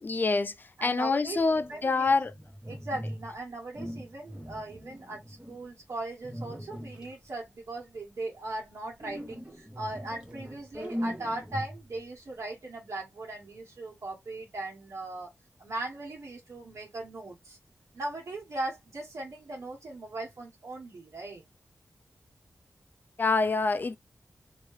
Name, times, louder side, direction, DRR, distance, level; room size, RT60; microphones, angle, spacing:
voice 1, 0.0-2.3 23.2-24.0, left 3 dB, 35° left, 0.3 m, -26 dB
voice 2, 0.8-2.1 2.7-15.3 15.6-17.6 17.9-21.4, right 2 dB, 65° right, 1.6 m, -39 dB
sound 1, 1.4-3.4 3.7-5.7 6.2-7.3 9.0-12.0, equal, 15° right, 1.2 m, -40 dB
2.8 x 2.7 x 3.2 m
wide cardioid pair, 90°, 5 cm